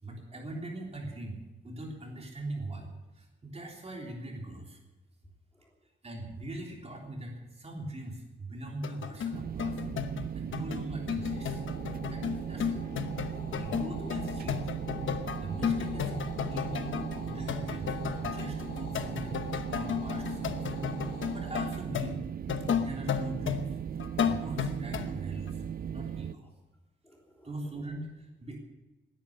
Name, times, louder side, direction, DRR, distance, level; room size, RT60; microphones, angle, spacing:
voice 1, 0.0-2.9 3.1-4.8 6.0-9.8 10.1-10.2 10.5-11.6 12.1-12.8 13.5-14.7 15.4-16.1 16.5-20.7 21.0-22.2 22.8-23.8 24.2-25.6 25.9-26.4 27.4-28.6, right 2 dB, 35° right, 0 dB, 3.4 m, -41 dB
voice 2, 5.2-5.8 10.2-10.3 12.1-12.6 26.2-26.5 27.0-28.0, equal, 10° left, -1 dB, 3.3 m, -59 dB
sound 1, 8.7-25.1 25.5-25.6, left 7 dB, 85° left, 1.0 m, -34 dB
sound 2, 9.3-26.3, right 8 dB, 50° right, 0.4 m, -38 dB
sound 3, 11.2-21.6, left 3 dB, 55° left, 4.1 m, -46 dB
19.5 x 11.0 x 6.7 m, 1.1 s
wide cardioid pair, 125°, 19 cm